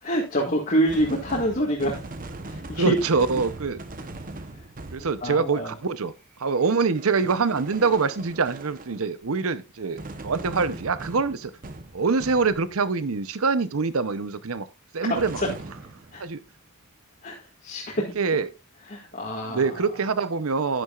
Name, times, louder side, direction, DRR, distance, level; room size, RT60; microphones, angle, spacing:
voice 1, 0.0-2.0 2.4-3.0 5.0-5.7 16.1-16.2 17.2-17.4 17.6-18.0 18.9-19.8, equal, 40° left, 1.7 m, -26 dB
sound 1, 0.9-5.7 6.6-9.2 10.0-12.9 15.2-16.6, right 2 dB, 40° right, 0.9 m, -40 dB
voice 2, 2.8-3.8 4.9-6.1 6.4-11.5 11.9-14.7 14.9-15.4 16.2-16.4 18.2-18.5 19.5-20.8, right 4 dB, 75° right, 0.7 m, -24 dB
10.5 x 9.6 x 2.4 m
head